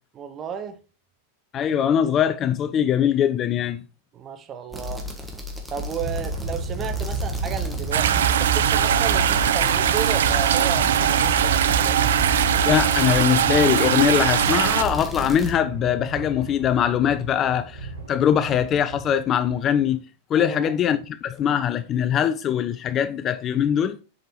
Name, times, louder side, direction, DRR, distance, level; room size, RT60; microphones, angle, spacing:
voice 1, 0.1-0.8 4.1-5.0 5.7-12.1 20.3-20.7, right 8 dB, 30° right, 1.0 m, -33 dB
voice 2, 1.5-3.8 12.7-20.0 20.3-24.0, left 9 dB, 30° left, 0.4 m, -22 dB
sound 1, 4.7-15.5, right 2 dB, ahead, 1.5 m, -30 dB
sound 2, 6.0-19.9, right 3 dB, 80° right, 1.5 m, -34 dB
sound 3, 7.9-14.8, right 10 dB, 60° right, 0.3 m, -21 dB
7.1 x 5.2 x 3.1 m
figure-of-eight pair, 90°, 0 cm